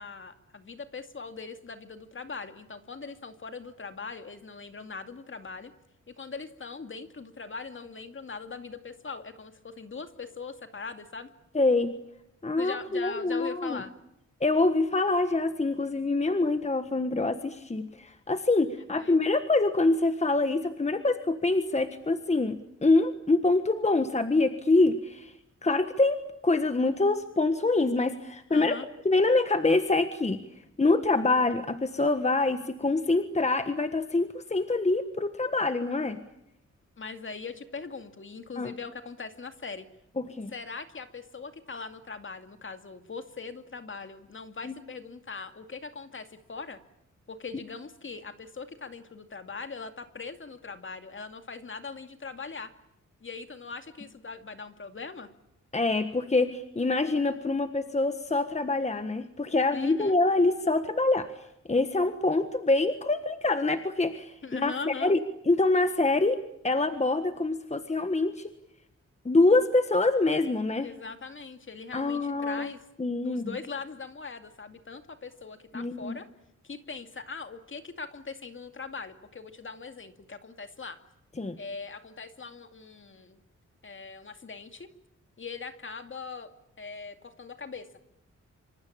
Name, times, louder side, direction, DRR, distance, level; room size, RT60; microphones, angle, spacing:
voice 1, 0.0-5.7 6.1-11.3 12.6-13.9 19.0-19.2 28.5-28.9 37.0-39.8 40.5-46.8 47.3-52.7 53.2-55.3 59.7-60.2 64.4-65.2 70.8-72.8 73.2-76.3 76.6-81.0 81.6-83.4 83.8-84.9 85.4-86.5 86.8-87.9, left 4 dB, 45° left, 8 dB, 2.3 m, -41 dB
voice 2, 11.5-11.9 12.4-13.8 14.4-25.3 25.6-28.8 29.0-30.4 30.8-36.2 38.6-38.7 40.2-40.5 44.6-44.7 55.7-61.3 61.7-64.3 64.6-65.2 65.5-66.4 66.6-68.5 69.2-70.9 71.9-72.7 73.0-73.5 75.7-76.1 81.4-81.6, left 2 dB, 25° left, 9 dB, 1.5 m, -25 dB
27.0 x 25.5 x 8.7 m, 0.79 s
wide cardioid pair, 110°, 29 cm